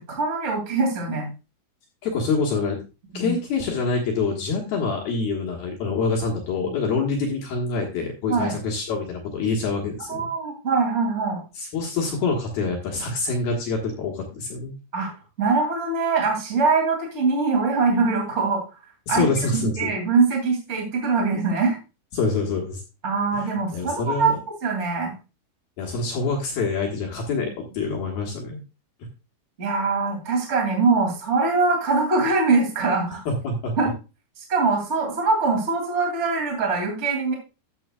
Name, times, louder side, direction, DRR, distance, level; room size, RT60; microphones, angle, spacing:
voice 1, 0.1-1.3 3.1-3.3 6.6-6.7 8.3-8.5 10.1-11.4 14.9-15.1 15.4-18.6 19.1-19.3 19.5-21.8 23.0-25.1 29.6-33.2 33.8-33.9 34.5-37.3, right 4 dB, 60° right, 1 dB, 0.7 m, -23 dB
voice 2, 2.0-2.8 3.1-10.3 11.5-14.7 19.1-19.9 22.1-22.8 23.3-23.5 23.7-24.4 25.8-28.6 33.3-33.7, left 4 dB, 65° left, 0 dB, 2.7 m, -26 dB
13.5 x 8.2 x 2.3 m, 0.29 s
omnidirectional pair, 5.9 m